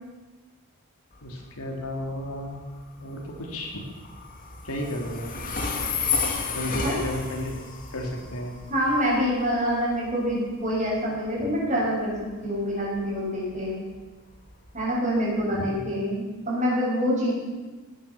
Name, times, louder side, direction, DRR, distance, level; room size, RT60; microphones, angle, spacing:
Train, 1.1-15.9, left 5 dB, 40° left, 2.3 m, -34 dB
voice 1, 1.2-2.6 3.0-3.8 4.6-5.3 6.5-7.6 7.9-8.5 11.4-11.5 15.5-15.8, left 1 dB, 75° left, 1 dB, 3.4 m, -33 dB
voice 2, 8.7-12.1 12.4-13.8 14.7-17.3, equal, 35° right, -4 dB, 6.5 m, -26 dB
17.5 x 11.5 x 7.2 m, 1.2 s
head